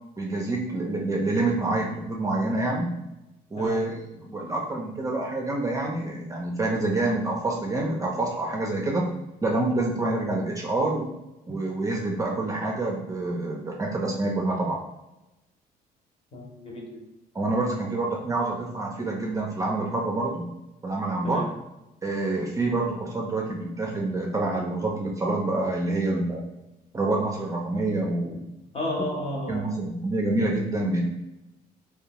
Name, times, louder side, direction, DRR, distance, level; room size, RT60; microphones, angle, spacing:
voice 1, 0.2-2.9 3.5-9.1 9.4-11.1 11.5-14.8 17.3-20.4 20.8-21.5 22.0-26.4 26.9-28.5 29.5-31.0, right 2 dB, 20° right, -1 dB, 0.4 m, -27 dB
voice 2, 3.6-3.9 16.3-17.0 21.2-21.5 28.7-29.7, left 1 dB, 35° left, 0 dB, 0.7 m, -33 dB
2.5 x 2.1 x 2.9 m, 0.96 s
cardioid pair, 110°, 17 cm